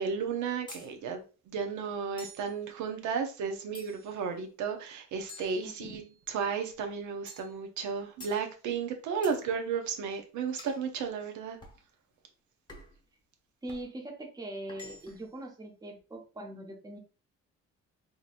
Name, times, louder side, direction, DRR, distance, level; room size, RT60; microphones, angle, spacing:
voice 1, 0.0-6.0 6.3-11.6, right 6 dB, 85° right, 0.7 m, -33 dB
sound 1, 0.7-0.9 2.2-2.5 3.7-4.2 5.3-6.2 7.3-7.5 8.2-8.4 9.2-9.4 10.6-10.8 11.6-11.8 12.7-13.0 13.7-13.9 14.7-15.3, left 2 dB, 15° left, 0.9 m, -49 dB
voice 2, 5.6-6.0 13.6-17.0, right 1 dB, 15° right, 0.7 m, -42 dB
3.8 x 2.8 x 2.5 m
cardioid pair, 125°, 29 cm